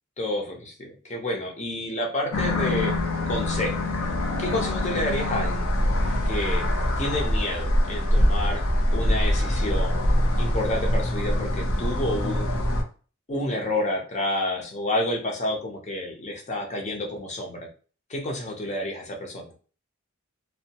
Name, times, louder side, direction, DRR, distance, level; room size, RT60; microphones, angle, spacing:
voice 1, 0.2-2.9 3.3-3.8 4.4-5.7 6.3-6.6 7.0-8.6 8.9-10.0 10.4-12.5 13.3-17.7 18.1-19.5, left 1 dB, 35° left, 1 dB, 0.7 m, -29 dB
sound 1, 2.3-12.8, left 1 dB, 90° left, 0.6 m, -24 dB
2.6 x 2.1 x 2.8 m, 0.38 s
head